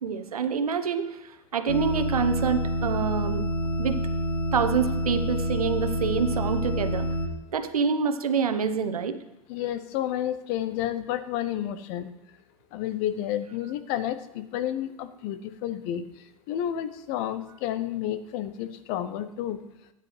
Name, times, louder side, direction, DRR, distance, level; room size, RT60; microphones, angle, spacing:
voice 1, 0.0-1.2 1.5-3.4 3.8-4.0 4.5-7.1 7.5-9.1, right 6 dB, 80° right, 9 dB, 0.8 m, -26 dB
sound 1, 1.7-7.3, equal, 80° left, 1.3 m, -28 dB
voice 2, 9.5-12.1 12.7-16.1 16.5-19.6, left 11 dB, 45° left, 12 dB, 0.7 m, -30 dB
13.0 x 9.6 x 3.2 m, 0.90 s
hypercardioid pair, 100°, 18 cm